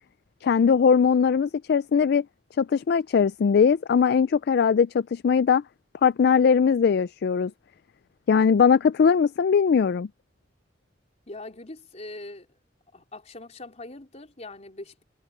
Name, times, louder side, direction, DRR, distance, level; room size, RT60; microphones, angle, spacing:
voice 1, 0.4-2.2 2.6-5.6 6.0-7.5 8.3-10.1, left 6 dB, 60° left, 0.3 m, -20 dB
voice 2, 11.3-12.6 12.9-15.0, left 2 dB, 40° left, 3.7 m, -42 dB
head